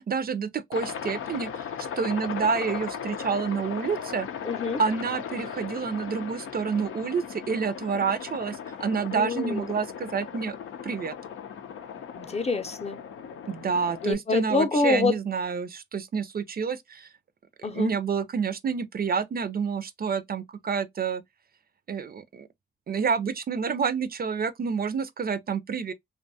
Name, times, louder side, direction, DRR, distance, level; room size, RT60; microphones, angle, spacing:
voice 1, 0.0-4.3 4.8-10.6 10.8-11.1 13.5-17.1 17.7-21.2 21.9-22.5 22.9-25.9, right 6 dB, 45° right, 0.4 m, -28 dB
Aircraft, 0.7-14.1, left 7 dB, 90° left, 0.5 m, -37 dB
voice 2, 4.4-4.8 9.1-9.7 12.1-13.0 14.0-15.2 17.6-17.9, left 3 dB, 30° left, 0.6 m, -26 dB
2.5 x 2.2 x 2.6 m
cardioid pair, 65°, 21 cm